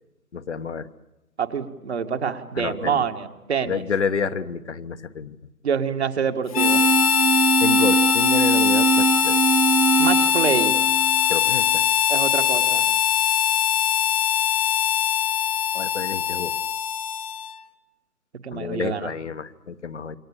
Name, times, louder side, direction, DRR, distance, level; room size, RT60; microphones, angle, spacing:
voice 1, 0.3-0.9 2.5-3.1 3.6-5.4 7.6-9.4 11.3-11.8 15.7-16.5 18.5-20.2, left 6 dB, 50° left, 10 dB, 1.2 m, -29 dB
voice 2, 1.4-3.8 5.6-6.8 10.0-10.8 12.1-12.9 18.4-19.1, right 6 dB, 45° right, 7 dB, 2.0 m, -26 dB
Harmonica, 6.5-17.6, left 9 dB, 25° left, 1.0 m, -21 dB
sound 1, 6.6-11.6, right 4 dB, 75° right, 4.2 m, -22 dB
28.0 x 23.0 x 8.9 m, 0.92 s
figure-of-eight pair, 140°, 44 cm